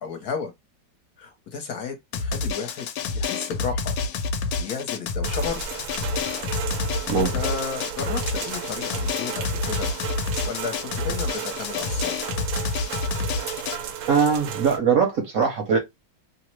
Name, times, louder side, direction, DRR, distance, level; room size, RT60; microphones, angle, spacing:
voice 1, 0.0-0.5 1.2-2.9 3.1-4.0 4.6-5.6 7.1-9.9 10.4-12.1, left 5 dB, 65° left, 1.2 m, -33 dB
Drum, 2.1-13.8, left 4 dB, 85° left, 1.3 m, -28 dB
sound 1, 5.2-14.8, right 9 dB, 85° right, 1.3 m, -34 dB
voice 2, 14.1-15.8, right 6 dB, 65° right, 0.9 m, -21 dB
3.1 x 2.1 x 2.9 m
omnidirectional pair, 2.0 m